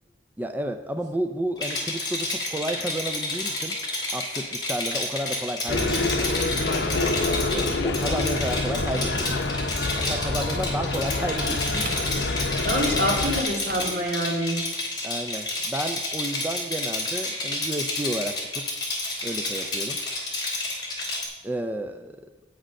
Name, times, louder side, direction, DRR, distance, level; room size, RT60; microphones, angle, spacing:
voice 1, 0.4-3.8 4.1-6.5 7.5-9.3 10.0-12.0 15.0-18.7 19.2-20.0 21.4-22.2, right 1 dB, 10° right, 7 dB, 0.4 m, -32 dB
Rattle, 1.6-21.3, left 2 dB, 25° left, 3.2 m, -30 dB
sound 1, 5.7-13.4, left 2 dB, 70° left, 0.8 m, -27 dB
sound 2, 9.8-14.2, right 3 dB, 55° right, 1.0 m, -43 dB
voice 2, 12.6-14.6, equal, 70° right, 0 dB, 2.4 m, -26 dB
9.2 x 6.4 x 6.4 m, 1.2 s
head